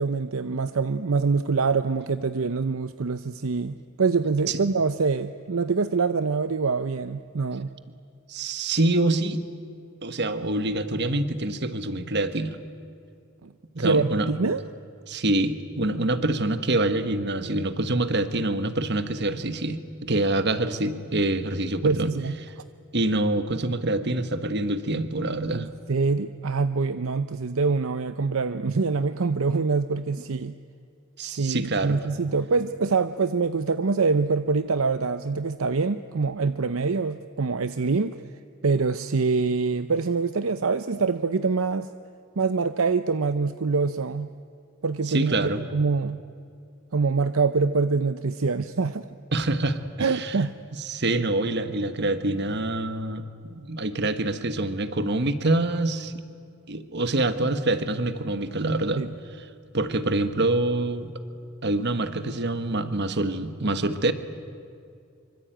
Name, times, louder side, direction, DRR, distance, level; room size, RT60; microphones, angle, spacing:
voice 1, 0.0-7.7 13.4-13.5 13.8-14.6 21.8-22.4 25.5-30.5 31.2-38.1 38.6-41.9 42.4-44.3 44.8-46.2 46.9-49.1 50.0-50.5 59.0-59.1, right 4 dB, 70° right, 11 dB, 0.7 m, -25 dB
voice 2, 8.3-9.4 10.0-12.6 13.7-14.3 15.1-22.1 22.4-22.5 22.9-25.7 31.2-32.0 45.1-45.6 49.3-50.4 50.8-56.1 56.7-59.0 59.7-61.1 61.6-64.1, right 2 dB, 50° right, 10 dB, 1.5 m, -26 dB
25.5 x 24.5 x 9.2 m, 2.4 s
head